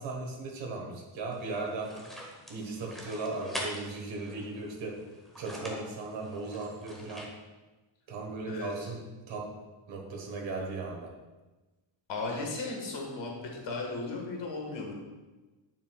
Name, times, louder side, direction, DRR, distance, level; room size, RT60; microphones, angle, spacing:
voice 1, 0.0-5.0 5.4-7.3 8.1-9.0 9.3-9.6 9.9-11.1, right 3 dB, 75° right, 0 dB, 1.5 m, -37 dB
sound 1, 1.3-7.3, equal, ahead, 1.1 m, -44 dB
voice 2, 12.1-14.9, left 3 dB, 65° left, 0 dB, 1.7 m, -36 dB
9.1 x 7.2 x 2.4 m, 1.2 s
wide cardioid pair, 170°, 47 cm